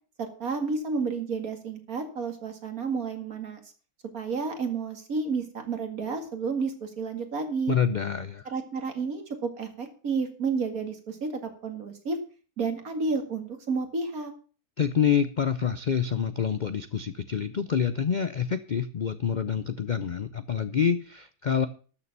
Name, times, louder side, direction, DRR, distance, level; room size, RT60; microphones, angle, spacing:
voice 1, 0.2-3.6 4.1-7.8 8.5-12.2 12.6-14.3, right 4 dB, 65° right, 6 dB, 2.5 m, -31 dB
voice 2, 7.7-8.5 14.8-21.7, left 7 dB, 55° left, 12 dB, 0.5 m, -27 dB
12.5 x 6.9 x 6.7 m, 0.38 s
omnidirectional pair, 1.6 m